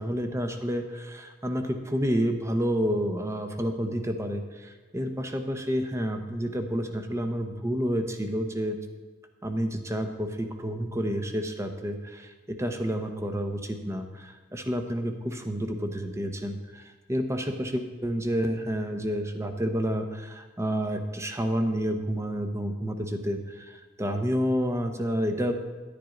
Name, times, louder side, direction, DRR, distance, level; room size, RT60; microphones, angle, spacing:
voice 1, 0.0-8.8 9.4-25.5, equal, 15° right, 6 dB, 0.8 m, -29 dB
10.5 x 10.0 x 3.9 m, 1.3 s
head